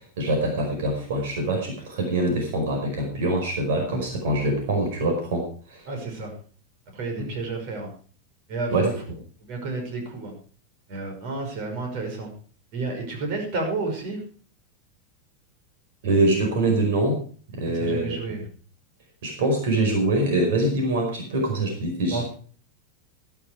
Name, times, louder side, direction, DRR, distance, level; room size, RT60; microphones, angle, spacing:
voice 1, 0.2-5.8 7.2-7.4 8.7-9.2 16.0-17.2 17.5-18.2 19.2-22.3, right 2 dB, 75° right, 3 dB, 4.9 m, -24 dB
voice 2, 5.9-6.3 6.9-7.9 8.5-8.9 9.5-10.3 10.9-12.3 12.7-14.2 17.7-18.4 22.1-22.3, right 3 dB, 50° right, 2 dB, 5.9 m, -31 dB
14.0 x 11.0 x 4.8 m, 0.42 s
supercardioid pair, 150°, 0 cm